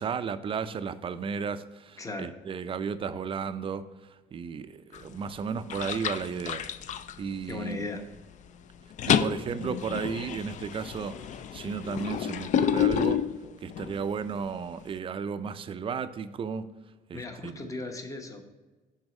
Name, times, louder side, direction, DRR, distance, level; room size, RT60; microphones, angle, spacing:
voice 1, 0.0-3.8 4.1-6.6 7.2-7.9 9.1-13.2 13.6-16.7 17.1-17.7, right 6 dB, 30° right, 12 dB, 0.4 m, -34 dB
voice 2, 2.0-2.3 7.5-8.0 17.1-18.5, left 2 dB, 20° left, 5 dB, 0.9 m, -37 dB
sound 1, 4.9-5.3 5.7-7.8 8.2-8.5 8.7-14.0, left 9 dB, 45° left, 0.4 m, -29 dB
6.2 x 4.0 x 5.2 m, 1.2 s
cardioid pair, 110°, 17 cm